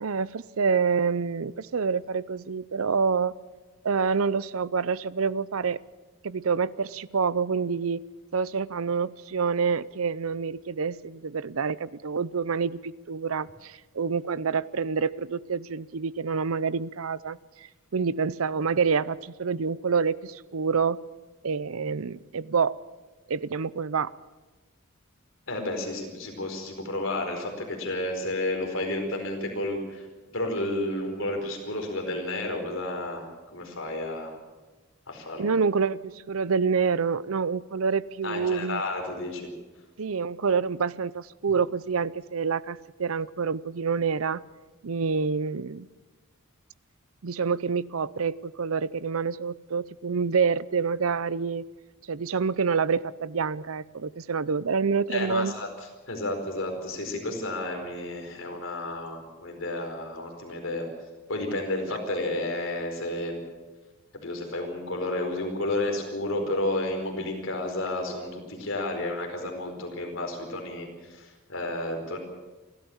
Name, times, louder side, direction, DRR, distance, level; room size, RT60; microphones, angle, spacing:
voice 1, 0.0-3.3 3.8-5.8 6.2-8.0 8.3-21.0 21.4-22.8 23.3-24.1 35.4-38.8 40.0-44.4 44.8-45.9 47.2-51.6 52.1-55.5, right 5 dB, 75° right, 19 dB, 0.6 m, -27 dB
voice 2, 25.5-30.1 30.3-34.4 35.1-35.5 38.2-39.4 55.1-55.7 56.1-60.9 61.3-63.4 64.1-72.2, left 1 dB, 60° left, 3 dB, 4.5 m, -31 dB
29.0 x 13.0 x 7.2 m, 1.2 s
head